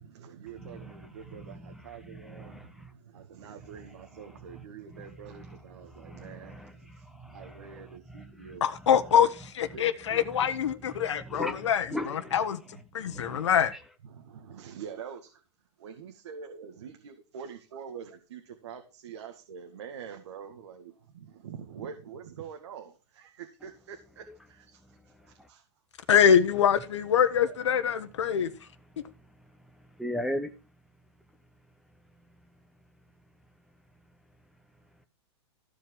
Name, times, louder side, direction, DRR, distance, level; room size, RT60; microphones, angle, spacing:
voice 1, 0.0-6.7 7.2-8.7 9.2-9.3 9.7-10.2 13.0-13.4 14.1-15.3 15.8-24.8 25.5-25.6, right 7 dB, 75° right, 2.1 m, -45 dB
voice 2, 0.6-2.9 4.1-4.6 4.9-5.6 6.0-8.6 10.1-10.2 10.9-12.4 13.0-13.5 24.3-24.4 25.4-25.5 30.0-30.5, left 1 dB, ahead, 0.9 m, -39 dB
voice 3, 8.6-12.6 12.9-13.7 26.1-28.5, left 8 dB, 90° left, 1.3 m, -24 dB
15.0 x 5.0 x 6.1 m
hypercardioid pair, 145°, 15 cm